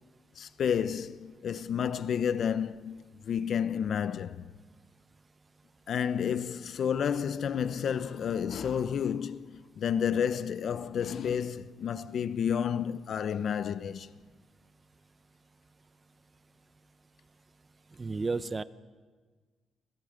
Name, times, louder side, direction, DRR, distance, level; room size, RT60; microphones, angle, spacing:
voice 1, 0.4-4.5 5.9-14.1, left 8 dB, 60° left, 0.8 m, -31 dB
voice 2, 18.0-18.6, right 3 dB, 30° right, 0.8 m, -32 dB
28.0 x 27.0 x 5.2 m
cardioid pair, 90°, 0 cm